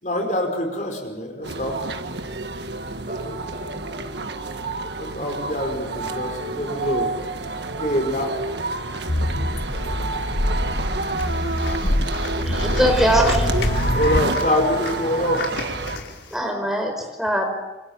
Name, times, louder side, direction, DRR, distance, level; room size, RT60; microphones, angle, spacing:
voice 1, 0.0-1.9 5.0-7.1 7.8-8.4 12.3-12.5 12.8-12.9 13.9-15.5, left 1 dB, 45° left, 4 dB, 5.1 m, -25 dB
sound 1, 1.4-16.0, right 3 dB, 75° right, 1.6 m, -29 dB
voice 2, 2.8-4.2 9.0-10.0 16.3-16.4, equal, 50° right, 3 dB, 6.9 m, -40 dB
sound 2, 9.1-14.2, left 1 dB, 70° left, 2.3 m, -24 dB
sound 3, 11.2-16.4, left 3 dB, 90° left, 4.8 m, -36 dB
voice 3, 12.5-13.5 16.3-17.5, right 1 dB, ahead, 2 dB, 5.1 m, -21 dB
28.0 x 26.0 x 7.4 m, 1.1 s
head